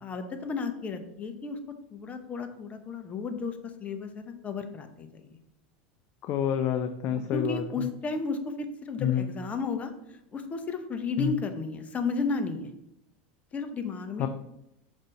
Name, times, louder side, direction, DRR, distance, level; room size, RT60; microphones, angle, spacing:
voice 1, 0.0-5.4 7.1-12.7 13.5-14.3, left 4 dB, 25° left, 7 dB, 0.9 m, -33 dB
voice 2, 6.2-7.6 9.0-9.3 11.2-11.3 14.2-14.3, left 9 dB, 50° left, 8 dB, 0.5 m, -27 dB
5.3 x 4.0 x 5.3 m, 0.84 s
hypercardioid pair, 105°, 5 cm